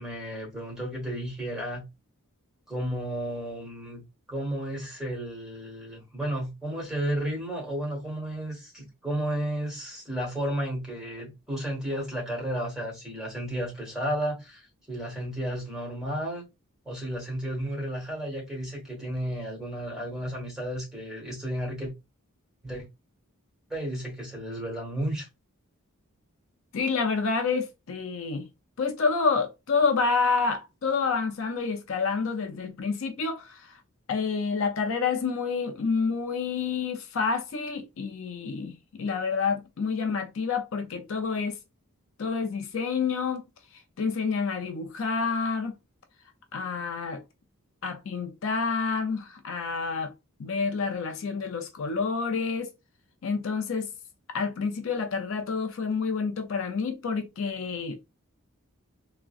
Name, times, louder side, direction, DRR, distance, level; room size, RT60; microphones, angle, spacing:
voice 1, 0.0-1.8 2.7-4.0 4.3-16.4 16.9-21.9 22.6-22.9 23.7-25.3, right 1 dB, 5° right, 1.2 m, -33 dB
voice 2, 26.7-28.5 28.8-33.8 34.1-41.6 42.2-43.4 44.0-45.7 46.5-47.2 47.8-50.1 50.4-52.7 53.2-53.9 54.3-58.0, left 5 dB, 60° left, 0.5 m, -28 dB
3.6 x 2.1 x 2.4 m
head